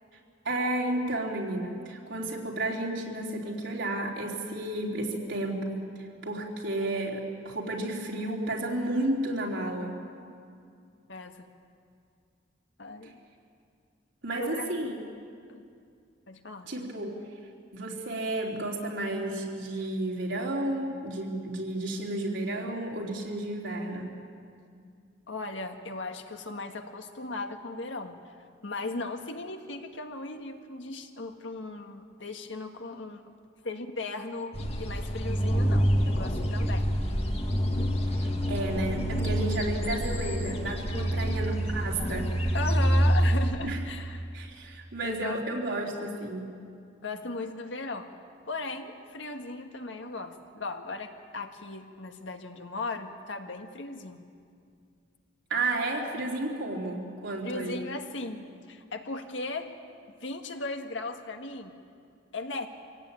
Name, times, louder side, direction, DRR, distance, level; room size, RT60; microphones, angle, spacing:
voice 1, 0.5-5.8 6.2-10.0 14.2-14.9 16.7-17.1 17.7-24.1 38.2-42.3 43.6-43.8 44.3-46.5 55.5-57.8, right 1 dB, 90° right, -1 dB, 3.6 m, -32 dB
voice 2, 11.1-11.4 12.8-13.2 14.4-14.9 15.5-15.6 16.3-16.7 25.3-28.2 28.6-33.3 33.6-36.9 40.9-41.5 42.5-44.3 45.0-45.4 45.7-46.2 47.0-48.1 48.5-54.2 57.4-59.7 60.2-61.8 62.3-62.7, left 3 dB, 85° left, 5 dB, 1.7 m, -37 dB
sound 1, 34.5-43.5, equal, 35° left, 1.9 m, -27 dB
24.5 x 17.0 x 8.9 m, 2.3 s
head